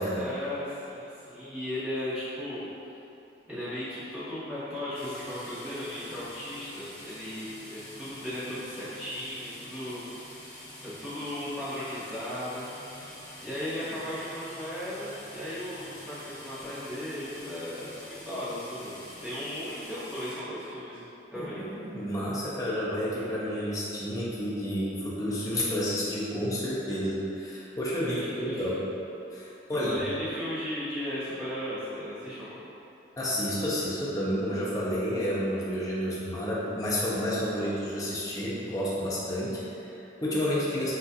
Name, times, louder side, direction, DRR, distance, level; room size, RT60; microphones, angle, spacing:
voice 1, 0.1-2.7 3.5-10.0 10.8-12.6 13.4-19.0 19.2-21.0 21.3-21.6 28.1-28.7 29.7-32.6, left 1 dB, 5° right, -14 dB, 1.1 m, -36 dB
sound 1, 4.9-20.3, left 1 dB, 50° left, 1.3 m, -46 dB
voice 2, 21.4-28.8 29.3-30.0 33.2-40.9, equal, 20° left, -7 dB, 0.5 m, -30 dB
5.7 x 2.4 x 2.7 m, 2.9 s
head